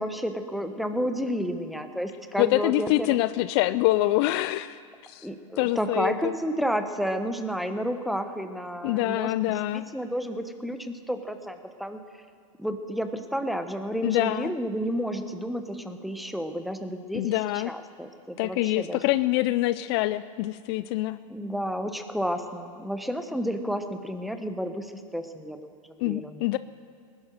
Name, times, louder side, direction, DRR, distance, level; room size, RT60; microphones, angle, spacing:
voice 1, 0.0-3.2 5.2-12.0 12.6-19.0 21.3-25.7 26.0-26.4, equal, ahead, 8 dB, 1.0 m, -31 dB
voice 2, 2.4-5.3 5.6-6.3 8.8-9.9 14.0-14.5 17.1-17.7 18.4-21.2 26.0-26.6, left 17 dB, 50° left, 15 dB, 0.4 m, -25 dB
19.0 x 11.5 x 6.5 m, 2.2 s
hypercardioid pair, 125°, 18 cm